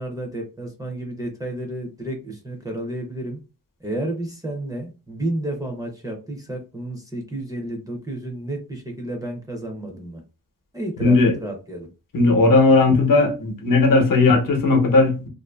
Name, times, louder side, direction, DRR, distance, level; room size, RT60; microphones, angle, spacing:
voice 1, 0.0-3.4 3.8-10.2 10.7-11.9, right 1 dB, 10° right, 0.4 m, -31 dB
voice 2, 11.0-11.3 12.1-15.3, left 3 dB, 70° left, 0.7 m, -16 dB
2.4 x 2.4 x 2.3 m
wide cardioid pair, 155°, 34 cm